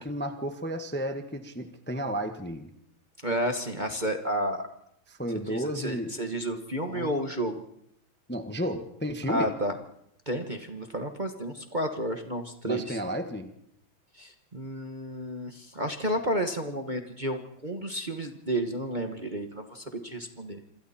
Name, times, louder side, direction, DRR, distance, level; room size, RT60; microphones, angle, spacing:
voice 1, 0.0-2.7 5.1-6.1 6.9-7.1 8.3-9.5 12.6-13.5, equal, 5° left, 6 dB, 1.1 m, -32 dB
voice 2, 3.2-4.7 5.4-7.6 9.3-9.7 10.3-13.0 14.2-20.6, equal, 25° right, 5 dB, 1.3 m, -31 dB
27.0 x 26.5 x 4.3 m, 0.77 s
omnidirectional pair, 2.3 m